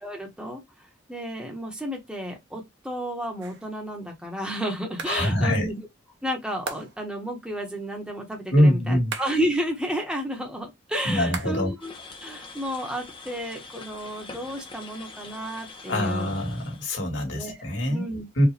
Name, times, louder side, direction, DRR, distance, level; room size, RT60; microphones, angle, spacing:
voice 1, 0.0-5.9 6.2-11.9 12.2-16.3 17.3-17.6 17.9-18.3, equal, 5° right, 1.1 m, -32 dB
sound 1, 3.4-3.8 5.0-5.3 6.6-7.2 9.1-9.6 11.3-11.8 12.1-13.0, right 4 dB, 70° right, 1.0 m, -38 dB
voice 2, 5.1-5.7 8.5-9.1 11.0-11.7 15.9-18.0 18.4-18.5, equal, 90° left, 2.2 m, -23 dB
sound 2, 11.8-16.9, left 3 dB, 30° left, 0.9 m, -44 dB
4.8 x 2.5 x 3.3 m
head